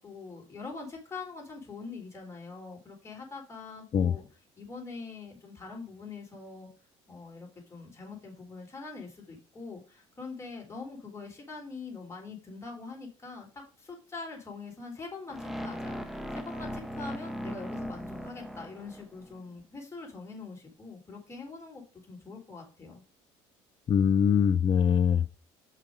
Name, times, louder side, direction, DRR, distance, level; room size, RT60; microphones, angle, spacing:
voice 1, 0.0-4.2 4.6-6.7 7.1-23.0, left 4 dB, 20° left, 3.9 m, -43 dB
sound 1, 15.3-19.4, equal, ahead, 1.0 m, -38 dB
voice 2, 23.9-25.4, left 8 dB, 35° left, 0.5 m, -23 dB
5.8 x 5.0 x 5.1 m
supercardioid pair, 90°, 14 cm